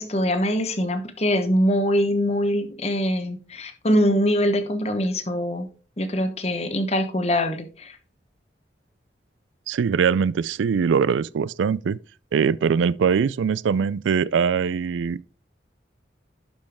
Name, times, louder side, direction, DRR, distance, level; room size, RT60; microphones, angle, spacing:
voice 1, 0.0-5.7 6.0-8.0, equal, 35° left, 1.1 m, -23 dB
voice 2, 9.7-12.0 12.3-15.2, right 6 dB, 85° right, 0.3 m, -22 dB
11.5 x 5.3 x 3.5 m
head